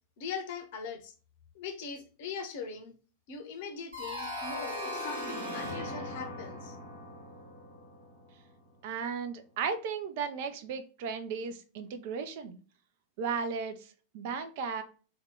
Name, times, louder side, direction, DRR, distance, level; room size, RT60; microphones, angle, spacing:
voice 1, 0.2-1.1 1.5-2.9 3.3-6.8, left 5 dB, 50° left, 6 dB, 0.6 m, -41 dB
sound 1, 3.9-8.6, left 1 dB, 75° right, 1.2 m, -39 dB
voice 2, 8.8-12.6 13.2-13.9 14.1-14.8, right 5 dB, 50° right, 8 dB, 0.4 m, -35 dB
2.7 x 2.2 x 3.6 m, 0.37 s
figure-of-eight pair, 90°, 0 cm